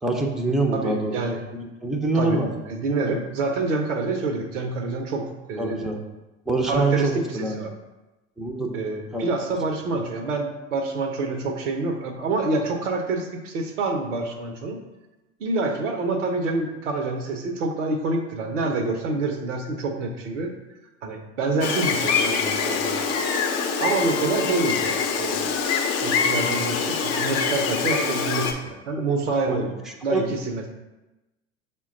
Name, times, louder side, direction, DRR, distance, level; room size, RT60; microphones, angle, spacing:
voice 1, 0.0-1.1 1.5-2.5 5.6-6.0 6.5-7.6 8.4-8.7 9.1-9.3 29.0-29.1 29.5-29.6 30.1-30.3, right 2 dB, ahead, 1 dB, 0.5 m, -25 dB
voice 2, 0.7-1.4 2.1-5.9 6.7-7.1 7.4-7.7 8.7-14.8 15.4-20.5 21.0-23.0 23.8-25.6 26.0-29.7 30.0-30.6, right 3 dB, 80° right, 5 dB, 0.7 m, -27 dB
Gull seagull, 21.6-28.5, left 5 dB, 45° left, 0.6 m, -24 dB
5.6 x 2.2 x 3.7 m, 1.0 s
hypercardioid pair, 75°, 36 cm